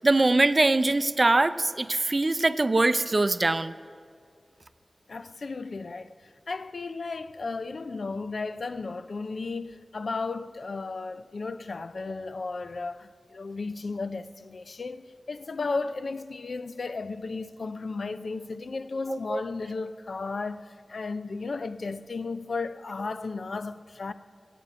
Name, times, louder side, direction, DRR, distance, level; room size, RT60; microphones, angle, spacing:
voice 1, 0.0-3.7 19.1-19.4, right 2 dB, 40° right, 0.5 m, -23 dB
voice 2, 5.1-6.1 6.5-24.1, left 3 dB, 75° left, 0.5 m, -34 dB
14.5 x 8.5 x 8.0 m
wide cardioid pair, 90°, 0 cm